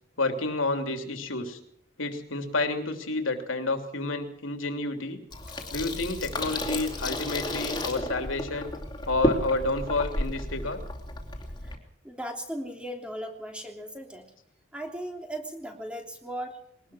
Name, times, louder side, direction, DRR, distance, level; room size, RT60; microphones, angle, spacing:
voice 1, 0.2-1.6 2.0-5.2 5.7-8.7 9.1-10.8, left 2 dB, 80° left, 5 dB, 3.1 m, -30 dB
Water tap faucet / Sink (filling or washing), 5.3-11.8, left 1 dB, 20° left, 3.2 m, -32 dB
voice 2, 12.0-14.3 14.7-16.6, right 1 dB, 5° right, 2 dB, 3.1 m, -37 dB
22.5 x 19.0 x 6.3 m, 0.67 s
head